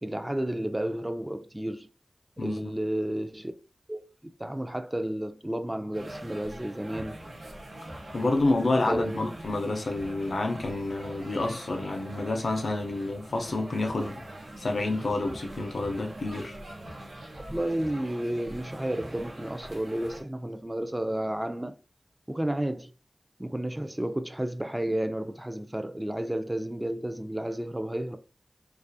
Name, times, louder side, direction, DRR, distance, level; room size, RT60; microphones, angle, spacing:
voice 1, 0.0-1.9 2.4-3.5 3.9-4.0 4.4-7.2 8.8-9.3 17.5-21.7 22.3-22.9 23.4-28.2, right 1 dB, 20° right, 0.3 m, -31 dB
voice 2, 2.4-2.7 8.1-14.2 14.6-16.6, left 2 dB, 80° left, 0.4 m, -29 dB
sound 1, 5.9-20.2, right 1 dB, 90° right, 0.6 m, -43 dB
2.3 x 2.3 x 2.5 m
wide cardioid pair, 50°, 0 cm